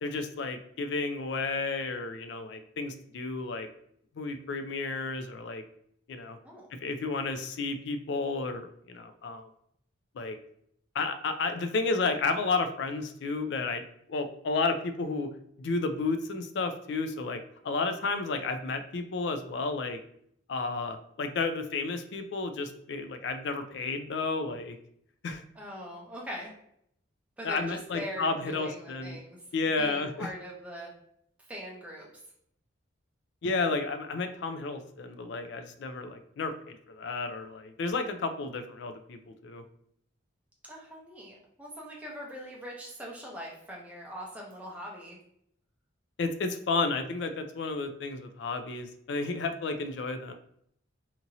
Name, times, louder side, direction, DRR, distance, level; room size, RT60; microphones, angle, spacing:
voice 1, 0.0-3.7 4.2-5.6 6.1-6.4 6.8-9.5 10.2-10.4 10.9-13.8 14.1-15.3 15.6-20.0 20.5-24.8 25.2-25.4 27.4-29.2 29.5-30.3 33.4-39.6 46.2-50.3, left 3 dB, 60° left, 8 dB, 0.3 m, -32 dB
voice 2, 25.5-26.5 27.4-29.4 29.8-30.9 31.5-32.1 40.7-45.2, equal, 5° right, -4 dB, 0.6 m, -42 dB
2.9 x 2.6 x 2.6 m, 0.70 s
head